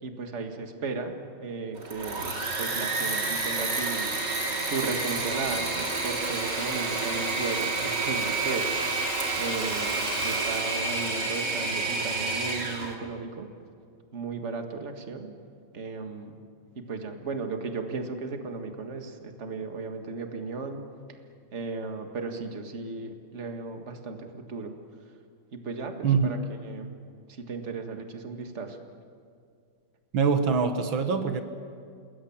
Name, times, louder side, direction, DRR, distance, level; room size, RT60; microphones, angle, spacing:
voice 1, 0.0-8.7 9.4-13.5 14.1-15.3 15.7-16.4 16.8-20.8 21.5-24.7 25.5-26.4 26.6-26.9 27.3-28.8, right 4 dB, 35° right, 5 dB, 2.0 m, -35 dB
Engine / Mechanisms, 1.7-12.9, right 3 dB, 60° right, 3.4 m, -29 dB
voice 2, 30.1-31.4, right 5 dB, 85° right, 7 dB, 2.2 m, -24 dB
29.0 x 21.0 x 7.3 m, 2.3 s
omnidirectional pair, 2.1 m